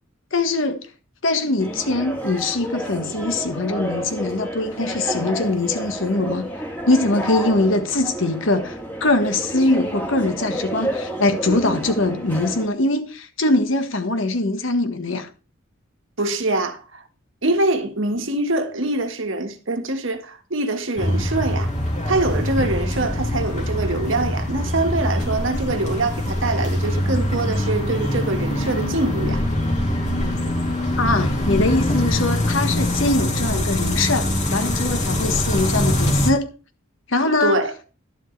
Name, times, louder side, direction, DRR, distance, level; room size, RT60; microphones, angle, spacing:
voice 1, 0.3-0.8 1.2-6.5 6.9-15.3 31.0-36.5 37.1-37.6, left 2 dB, 70° left, 1.4 m, -22 dB
sound 1, 1.6-12.7, equal, 10° left, 2.3 m, -30 dB
voice 2, 16.2-17.0 17.4-21.7 22.1-29.4 37.4-37.7, right 2 dB, 70° right, 1.6 m, -24 dB
sound 2, 21.0-36.3, left 1 dB, 35° left, 2.3 m, -23 dB
12.0 x 11.0 x 3.3 m
head